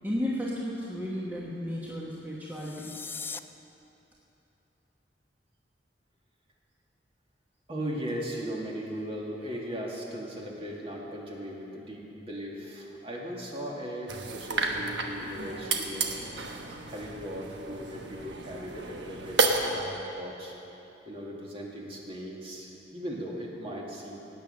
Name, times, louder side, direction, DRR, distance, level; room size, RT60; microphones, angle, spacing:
voice 1, 0.0-2.9, left 1 dB, 10° right, -6 dB, 1.3 m, -33 dB
sound 1, 2.4-3.4, left 5 dB, 10° left, 0.3 m, -39 dB
voice 2, 7.7-16.1 16.9-19.4 19.7-20.6 21.1-24.2, equal, 35° right, -2 dB, 2.2 m, -38 dB
sound 2, 14.1-19.8, right 3 dB, 75° right, 1.2 m, -31 dB
17.0 x 9.0 x 6.6 m, 3.0 s
head